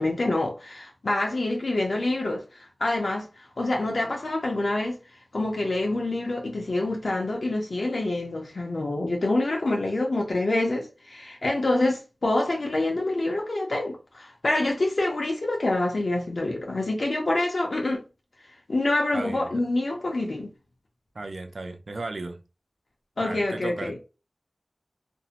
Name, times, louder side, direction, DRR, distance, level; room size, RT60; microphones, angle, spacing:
voice 1, 0.0-3.3 3.6-5.0 5.3-18.0 18.7-20.5 23.2-24.0, left 2 dB, 70° left, 0.5 m, -26 dB
voice 2, 19.1-19.6 21.1-22.4 23.2-24.0, right 2 dB, 70° right, 0.4 m, -35 dB
2.5 x 2.1 x 2.8 m
wide cardioid pair, 75°, 0 cm